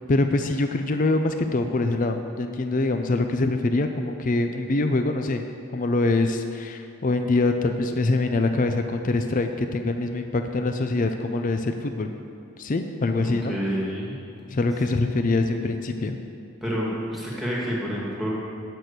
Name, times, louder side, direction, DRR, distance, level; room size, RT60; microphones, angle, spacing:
voice 1, 0.1-5.4 5.7-12.1 12.6-13.5 14.5-16.2, left 2 dB, 35° left, 6 dB, 0.4 m, -24 dB
voice 2, 13.2-14.2 16.6-18.4, equal, ahead, -5 dB, 1.9 m, -28 dB
8.9 x 6.0 x 8.1 m, 2.5 s
head